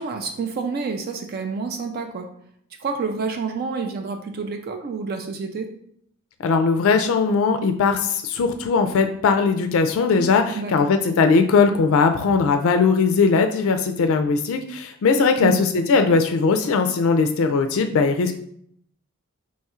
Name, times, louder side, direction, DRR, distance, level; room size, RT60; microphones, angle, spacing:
voice 1, 0.0-2.3 2.8-5.7 10.5-10.9 15.4-15.6, right 4 dB, 45° right, 5 dB, 0.4 m, -28 dB
voice 2, 6.4-18.3, left 4 dB, 70° left, 6 dB, 0.3 m, -19 dB
3.0 x 2.3 x 4.2 m, 0.66 s
head